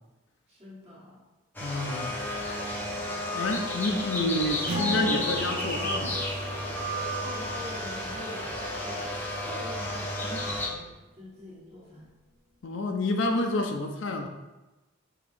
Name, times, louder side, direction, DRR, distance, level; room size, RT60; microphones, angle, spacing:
voice 1, 0.5-1.2 7.2-9.0 9.4-12.1, left 1 dB, 30° right, -6 dB, 1.3 m, -44 dB
sound 1, 1.5-10.7, left 1 dB, 10° left, 0.6 m, -32 dB
voice 2, 1.6-2.2 3.3-6.3 12.6-14.3, left 2 dB, 60° left, 5 dB, 0.4 m, -29 dB
Acoustic guitar, 4.7-9.6, left 1 dB, 90° right, 1.1 m, -38 dB
5.2 x 2.9 x 3.2 m, 1.1 s
head